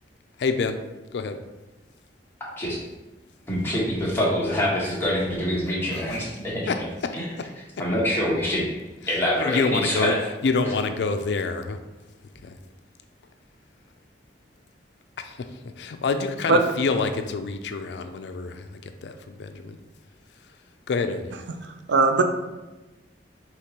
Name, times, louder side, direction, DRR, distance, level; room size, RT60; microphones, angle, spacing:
voice 1, 0.4-0.8 1.1-1.4 5.9-6.0 6.7-6.8 7.1-7.2 9.4-10.1 10.4-11.8 12.4-12.6 15.2-15.4 15.8-19.8 20.9-21.3, left 4 dB, 70° left, 7 dB, 0.4 m, -27 dB
voice 2, 3.5-6.8 7.1-7.2 7.8-8.7 9.1-10.2 10.6-10.7, equal, 15° left, -7 dB, 1.2 m, -25 dB
voice 3, 21.6-22.2, right 3 dB, 85° right, 6 dB, 0.5 m, -19 dB
5.0 x 3.0 x 2.9 m, 1.1 s
head